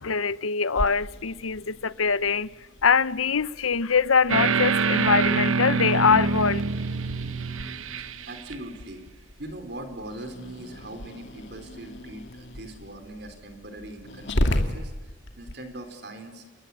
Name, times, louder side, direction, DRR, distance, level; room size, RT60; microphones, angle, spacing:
voice 1, 0.0-2.5 2.8-6.6, left 5 dB, 90° left, 0.8 m, -23 dB
Growling, 0.7-15.5, left 1 dB, 60° left, 2.5 m, -35 dB
sound 1, 4.3-8.5, right 4 dB, 85° right, 1.0 m, -25 dB
voice 2, 8.0-9.0 9.4-14.9 15.4-16.4, right 1 dB, 55° right, 4.3 m, -41 dB
28.0 x 23.0 x 8.7 m
head